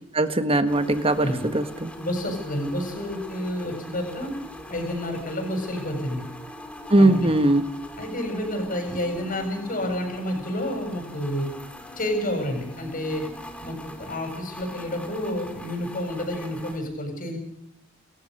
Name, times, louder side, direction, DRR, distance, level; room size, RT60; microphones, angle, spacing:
voice 1, 0.1-1.9 6.9-7.6, right 1 dB, 25° right, 10 dB, 1.6 m, -20 dB
sound 1, 0.7-16.8, left 1 dB, 5° left, 2.8 m, -42 dB
voice 2, 1.9-4.3 4.7-6.2 7.0-7.1 8.0-11.5 12.0-13.2 13.6-17.4, left 1 dB, 40° left, 4 dB, 7.8 m, -29 dB
28.5 x 14.5 x 6.7 m, 0.75 s
head